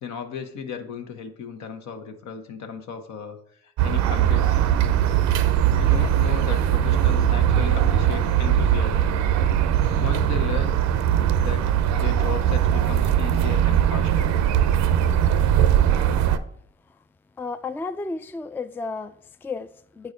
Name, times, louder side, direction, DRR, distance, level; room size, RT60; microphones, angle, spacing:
voice 1, 0.0-3.4 3.6-4.6 5.7-9.1 10.0-10.9 11.4-14.3, left 6 dB, 70° left, 1.0 m, -35 dB
sound 1, 3.8-16.4, right 10 dB, 70° right, 0.6 m, -20 dB
voice 2, 17.4-20.1, left 3 dB, 5° left, 0.3 m, -33 dB
8.2 x 4.7 x 3.9 m
supercardioid pair, 55°, 29 cm